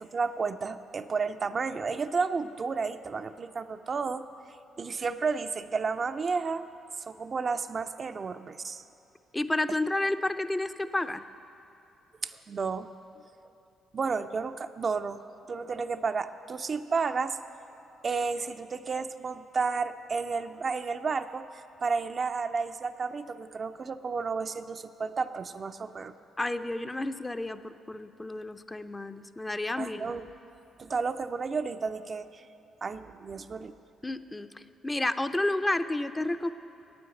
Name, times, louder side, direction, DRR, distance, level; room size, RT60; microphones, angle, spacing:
voice 1, 0.0-4.3 4.8-6.7 7.1-8.8 12.2-12.9 13.9-15.2 15.5-17.4 18.0-26.1 29.8-30.3 30.8-32.4 32.8-33.8, right 4 dB, 45° right, 9 dB, 0.4 m, -32 dB
voice 2, 9.3-11.2 26.4-30.1 34.0-36.5, left 2 dB, 20° left, 10 dB, 0.5 m, -31 dB
9.1 x 7.8 x 9.0 m, 2.8 s
hypercardioid pair, 45°, 0 cm